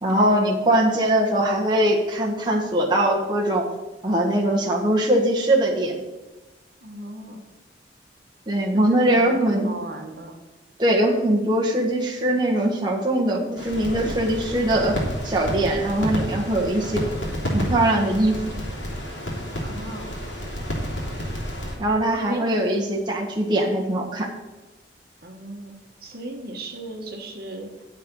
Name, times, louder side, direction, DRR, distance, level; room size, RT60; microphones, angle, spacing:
voice 1, 0.0-3.6 4.0-6.0 8.5-9.7 10.8-15.0 15.2-17.0 17.5-18.4 21.8-24.3, right 1 dB, 25° right, -2 dB, 1.3 m, -21 dB
voice 2, 6.8-7.4 8.7-10.4 19.6-20.2 22.0-22.5 25.2-25.7 26.0-27.8, right 1 dB, 55° right, 3 dB, 1.4 m, -36 dB
sound 1, 13.6-21.8, equal, 80° left, 3.2 m, -30 dB
9.9 x 8.0 x 5.4 m, 1.1 s
head